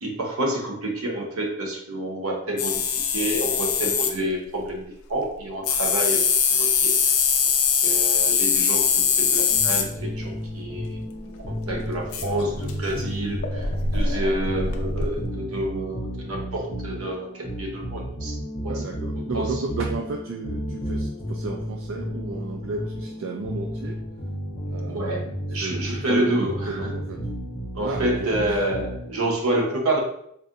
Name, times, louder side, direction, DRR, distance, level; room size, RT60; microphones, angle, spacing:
voice 1, 0.0-4.8 5.1-6.3 6.6-6.9 7.8-11.0 11.7-18.4 18.6-19.0 19.3-19.5 24.9-26.9 27.7-30.0, right 1 dB, 80° right, 0 dB, 0.8 m, -28 dB
sound 1, 2.6-4.1 5.6-9.8 11.2-11.3 11.4-15.3, left 6 dB, 70° left, 0.4 m, -22 dB
sound 2, 9.5-29.3, equal, 30° left, 0.9 m, -33 dB
voice 2, 18.7-24.0 24.7-27.2 27.8-28.5, right 3 dB, 60° right, 1 dB, 0.3 m, -33 dB
4.0 x 2.6 x 2.4 m, 0.72 s
head